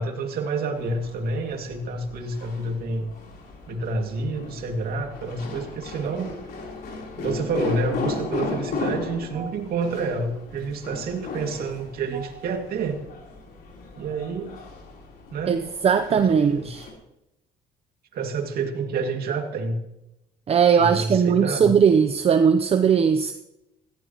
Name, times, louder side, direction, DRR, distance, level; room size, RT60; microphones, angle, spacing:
voice 1, 0.0-3.1 3.7-6.4 7.2-13.0 14.0-14.6 15.3-15.6 16.1-16.7 18.1-19.8 20.8-21.7, right 3 dB, 65° right, 4 dB, 2.4 m, -28 dB
sound 1, 0.7-16.9, left 4 dB, 65° left, 3.8 m, -36 dB
voice 2, 15.5-16.9 20.5-23.3, right 7 dB, 35° right, 8 dB, 0.7 m, -19 dB
17.5 x 15.0 x 3.1 m, 0.89 s
cardioid pair, 110°, 17 cm